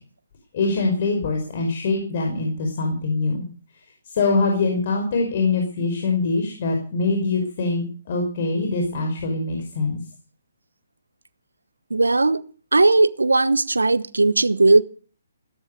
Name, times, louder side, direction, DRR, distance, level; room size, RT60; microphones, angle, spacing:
voice 1, 0.5-3.4 4.0-10.0, left 3 dB, 50° left, 2 dB, 5.4 m, -23 dB
voice 2, 11.9-12.4 12.7-14.8, right 3 dB, 90° right, 17 dB, 1.1 m, -17 dB
15.5 x 13.5 x 6.8 m, 0.41 s
figure-of-eight pair, 140°, 0 cm